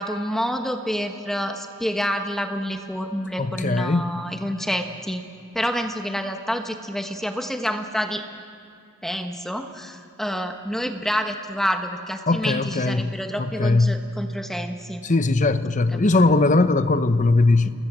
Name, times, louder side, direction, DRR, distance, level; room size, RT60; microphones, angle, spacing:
voice 1, 0.0-5.2 5.5-8.2 9.0-15.0 15.9-16.6, equal, ahead, 1.2 m, -28 dB
voice 2, 3.4-4.1 12.3-13.1 13.4-13.9 15.0-17.7, left 2 dB, 35° left, 0.9 m, -19 dB
28.0 x 21.0 x 7.5 m
head